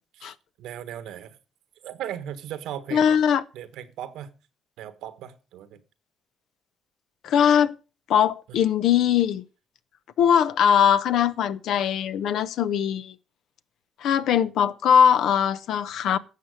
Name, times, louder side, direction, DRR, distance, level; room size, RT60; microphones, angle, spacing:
voice 1, 0.2-1.4 1.8-3.2 3.5-4.3 4.8-5.8 8.5-8.6, right 10 dB, 90° right, 1.3 m, -37 dB
voice 2, 2.9-3.4 7.2-7.7 8.1-9.4 10.2-13.1 14.0-16.2, left 8 dB, 80° left, 0.8 m, -21 dB
12.0 x 7.6 x 6.4 m
cardioid pair, 90°, 0 cm